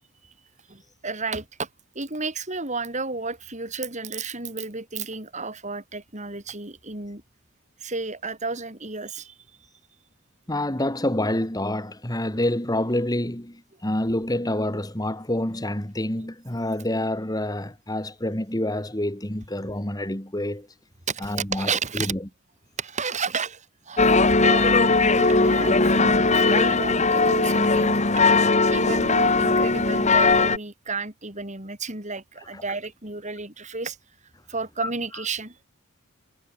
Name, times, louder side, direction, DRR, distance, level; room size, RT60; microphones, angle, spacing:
voice 1, 0.7-1.7 1.9-7.2 7.8-9.3 21.1-22.1 22.8-24.0 24.4-28.0 28.7-34.0 34.5-35.5, right 4 dB, 35° right, 6.4 m, -32 dB
voice 2, 10.5-13.6 13.8-20.7 21.2-22.2 32.5-32.6 34.8-34.9, left 1 dB, 15° left, 2.3 m, -27 dB
sound 1, 24.0-30.6, left 3 dB, 35° left, 2.4 m, -19 dB
head